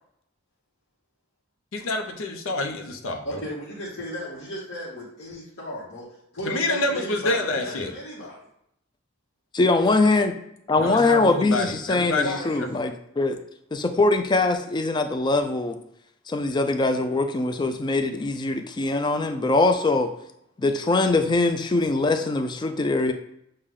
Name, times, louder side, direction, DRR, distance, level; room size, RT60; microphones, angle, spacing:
voice 1, 1.7-3.4 6.4-7.9 10.8-12.4, left 2 dB, 85° left, 4 dB, 0.7 m, -27 dB
voice 2, 3.2-8.4 12.2-12.8, equal, 60° left, -8 dB, 1.1 m, -35 dB
voice 3, 9.5-10.4 10.7-13.4 13.7-15.8 16.3-20.1 20.6-23.1, left 3 dB, 20° left, 8 dB, 0.3 m, -22 dB
6.4 x 2.2 x 3.6 m, 0.75 s
head